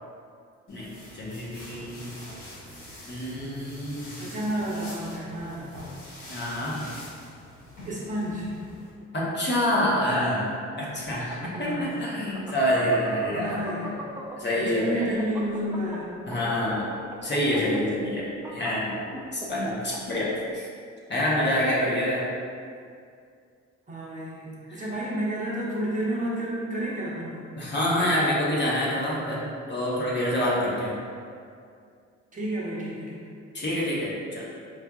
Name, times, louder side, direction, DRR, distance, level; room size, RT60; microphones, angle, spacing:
sound 1, 0.7-8.9, left 1 dB, 90° left, 1.3 m, -45 dB
voice 1, 0.7-2.1 3.1-4.3 6.3-6.9 9.1-10.5 10.8-13.5 14.4-15.1 16.3-16.8 17.2-18.9 19.3-20.7 21.1-22.3 24.7-24.8 27.6-30.9 33.5-34.4, left 1 dB, 35° left, -6 dB, 0.8 m, -27 dB
voice 2, 4.2-6.0 7.8-8.5 11.5-12.0 13.3-14.0 14.6-16.1 23.9-27.4 32.3-33.2, right 1 dB, 25° right, -7 dB, 0.8 m, -31 dB
sound 2, 11.1-14.5 14.9-20.2, right 2 dB, 10° right, 0.4 m, -39 dB
4.6 x 2.4 x 2.3 m, 2.3 s
cardioid pair, 90°, 30 cm